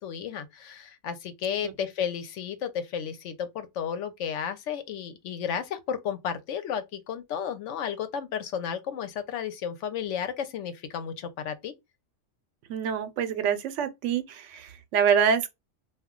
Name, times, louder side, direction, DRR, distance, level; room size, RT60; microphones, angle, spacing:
voice 1, 0.0-11.7, left 8 dB, 80° left, 0.9 m, -33 dB
voice 2, 12.7-15.5, right 7 dB, 85° right, 0.9 m, -26 dB
2.3 x 2.2 x 3.6 m
omnidirectional pair, 1.2 m